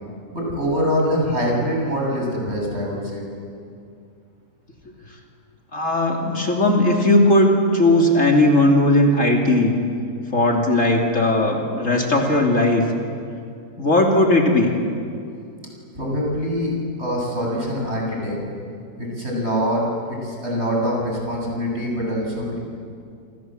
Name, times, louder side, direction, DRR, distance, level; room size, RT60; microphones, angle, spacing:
voice 1, 0.3-3.3 16.0-16.7 17.0-18.4 19.0-19.8 20.1-22.6, equal, 40° right, -2 dB, 8.1 m, -24 dB
voice 2, 5.7-9.7 10.3-12.9 13.8-14.7, left 1 dB, 50° left, 0 dB, 3.3 m, -17 dB
28.5 x 27.0 x 7.7 m, 2.4 s
omnidirectional pair, 1.7 m